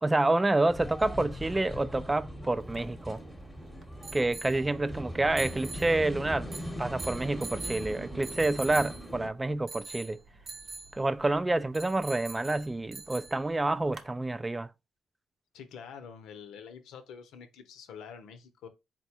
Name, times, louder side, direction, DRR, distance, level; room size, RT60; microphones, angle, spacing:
voice 1, 0.0-3.2 4.1-6.5 6.8-10.2 10.9-14.7, right 2 dB, 15° right, 0.3 m, -28 dB
sound 1, 0.7-9.3, equal, 5° left, 0.9 m, -40 dB
sound 2, 2.5-14.1, right 3 dB, 55° right, 0.7 m, -45 dB
voice 2, 15.5-18.7, left 7 dB, 85° left, 0.7 m, -46 dB
4.1 x 2.2 x 4.3 m
cardioid pair, 90°, 0 cm